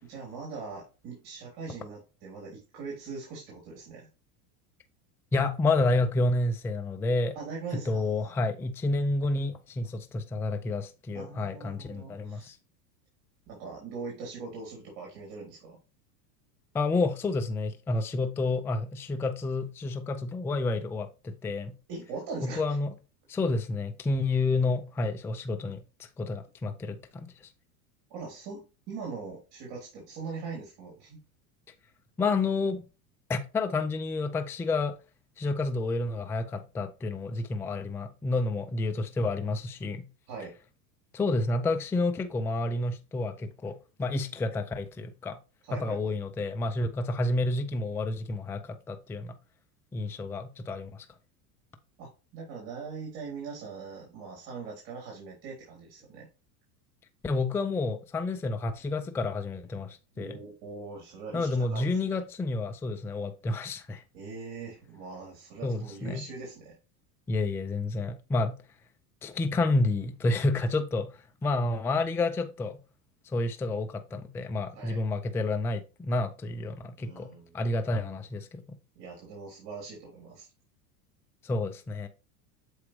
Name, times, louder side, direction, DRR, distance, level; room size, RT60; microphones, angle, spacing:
voice 1, 0.0-4.1 7.3-8.3 11.1-12.5 13.5-15.8 21.9-22.8 28.1-31.2 40.3-40.5 45.7-46.1 52.0-56.3 60.1-62.0 64.1-66.8 74.7-75.0 77.0-77.6 78.9-80.5, right 4 dB, 55° right, 3.3 m, -41 dB
voice 2, 5.3-7.4 7.9-12.6 16.7-21.8 22.4-22.9 23.3-27.5 32.2-32.8 33.3-34.9 35.4-40.1 41.1-45.4 45.7-49.3 49.9-51.1 57.2-60.4 61.3-64.0 65.6-66.2 67.3-68.6 69.2-71.1 71.4-72.8 73.3-78.6 81.4-82.1, left 2 dB, 5° left, 0.3 m, -29 dB
7.1 x 4.8 x 3.1 m
supercardioid pair, 110°, 47 cm